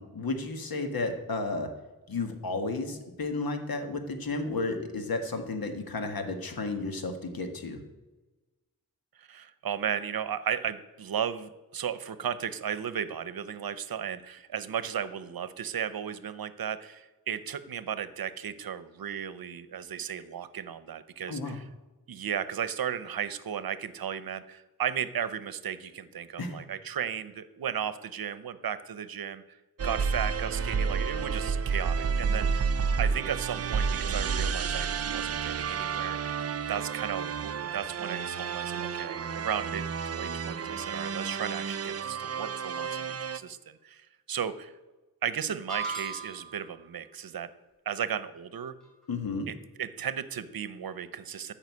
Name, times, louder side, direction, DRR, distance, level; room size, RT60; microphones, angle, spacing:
voice 1, 0.0-1.7 2.1-7.8 21.3-21.6 26.4-26.6 49.1-49.5, left 3 dB, 70° left, 6 dB, 1.7 m, -32 dB
voice 2, 9.2-21.7 22.1-29.6 29.8-32.7 33.0-36.2 36.7-44.7 45.2-47.5 47.9-48.7 49.5-51.5, right 8 dB, 70° right, 14 dB, 0.8 m, -35 dB
sound 1, 29.8-43.4, right 6 dB, 45° right, 0.5 m, -31 dB
sound 2, 45.7-46.7, right 4 dB, ahead, 3.2 m, -36 dB
13.5 x 5.7 x 8.4 m, 1.2 s
wide cardioid pair, 135°, 37 cm